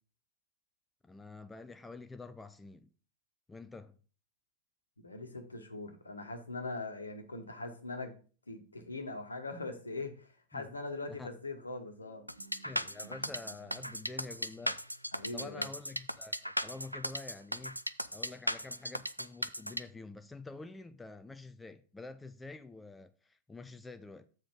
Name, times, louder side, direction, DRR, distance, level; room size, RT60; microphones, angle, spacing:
voice 1, 1.0-2.9 3.5-4.0 10.5-10.7 11.1-11.3 12.6-14.8 15.3-17.8 18.1-24.3, left 3 dB, 10° left, 0.6 m, -48 dB
voice 2, 5.0-8.2 8.5-12.3 15.1-15.7, left 3 dB, 80° left, 1.3 m, -41 dB
sound 1, 12.0-17.8, right 4 dB, 75° right, 1.2 m, -60 dB
sound 2, 12.3-19.8, equal, 90° right, 0.4 m, -36 dB
7.4 x 5.1 x 4.9 m
figure-of-eight pair, 90°, 0 cm